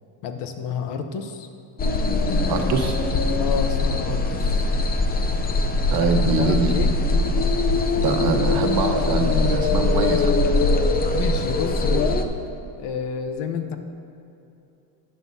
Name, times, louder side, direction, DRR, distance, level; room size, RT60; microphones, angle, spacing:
voice 1, 0.2-1.5 2.3-2.9 3.4-4.6 6.0-6.1 6.4-6.9 11.1-12.2 12.8-13.8, left 6 dB, 65° left, 7 dB, 0.9 m, -30 dB
sound 1, 1.8-12.2, left 2 dB, 20° left, 0.5 m, -22 dB
voice 2, 2.5-3.0 5.9-6.7 7.6-7.7 8.0-10.4, right 4 dB, 55° right, 4 dB, 1.2 m, -23 dB
13.0 x 9.4 x 2.8 m, 2.8 s
cardioid pair, 130°, 44 cm